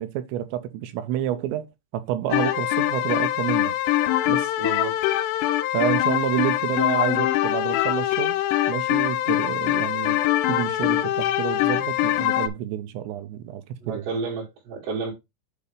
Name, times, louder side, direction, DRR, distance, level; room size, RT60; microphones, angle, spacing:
voice 1, 0.0-1.7 1.9-3.8 4.3-4.5 5.7-8.4 8.7-10.2 10.5-14.1, right 12 dB, 85° right, 2.8 m, -29 dB
sound 1, 2.3-12.5, left 14 dB, 80° left, 2.6 m, -23 dB
voice 2, 4.6-5.0 13.8-15.1, right 4 dB, 70° right, 3.8 m, -30 dB
8.2 x 2.8 x 5.2 m
omnidirectional pair, 5.3 m